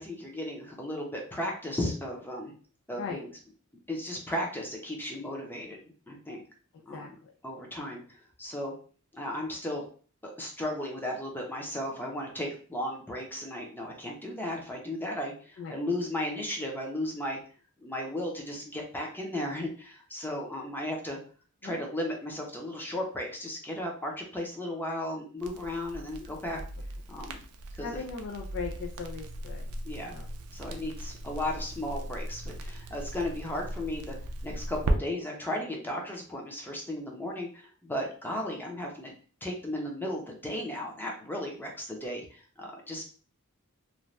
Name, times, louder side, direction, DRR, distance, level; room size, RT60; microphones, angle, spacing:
voice 1, 0.0-2.5 2.9-3.3 3.9-5.8 6.1-6.4 6.8-7.2 7.4-8.7 9.1-9.8 10.2-17.4 17.8-21.2 21.6-26.6 27.1-27.4 27.7-28.0 29.8-30.1 30.5-34.2 34.4-39.1 39.4-43.0, left 1 dB, 10° left, 0 dB, 0.6 m, -35 dB
voice 2, 2.9-3.2 6.9-7.1 15.6-15.8 21.6-21.8 26.5-26.6 27.8-29.7 30.0-30.3, left 5 dB, 55° left, 2 dB, 0.4 m, -38 dB
Crackle, 25.4-35.0, right 1 dB, 75° right, 0.4 m, -37 dB
2.6 x 2.2 x 3.1 m, 0.41 s
head